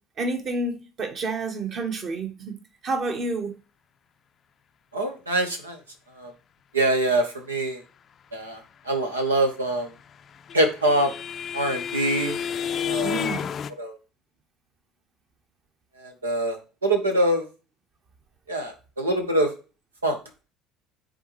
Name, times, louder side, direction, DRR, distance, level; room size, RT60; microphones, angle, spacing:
voice 1, 0.2-2.5 2.8-3.5 13.0-13.5, right 2 dB, 45° right, 1.6 m, -29 dB
voice 2, 4.9-5.8 6.2-6.3 6.7-7.8 8.3-8.6 8.9-9.9 10.5-11.1 11.5-12.4 12.8-13.3 13.8-14.0 16.0-17.4 18.5-19.5 20.0-20.2, right 1 dB, 85° right, 1.2 m, -24 dB
sound 1, 9.8-13.7, left 8 dB, 40° left, 0.5 m, -30 dB
9.7 x 4.1 x 3.2 m
figure-of-eight pair, 60°, 0 cm